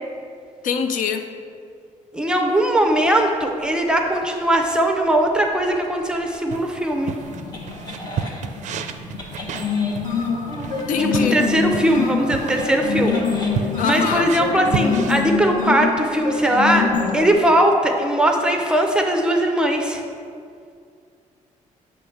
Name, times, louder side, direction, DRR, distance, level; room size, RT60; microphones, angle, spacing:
voice 1, 0.6-1.3 10.9-11.4 13.8-14.3, left 6 dB, 80° left, 7 dB, 0.5 m, -24 dB
voice 2, 2.1-7.1 11.0-13.2 13.8-20.0, right 1 dB, 5° right, 2 dB, 0.6 m, -20 dB
sound 1, 3.9-8.4 9.2-17.4, left 5 dB, 30° left, 0.9 m, -25 dB
sound 2, 6.5-15.1, right 7 dB, 65° right, 0.4 m, -32 dB
sound 3, 6.9-15.3, left 4 dB, 60° left, 1.0 m, -39 dB
8.2 x 3.2 x 5.7 m, 2.3 s
cardioid pair, 145°, 13 cm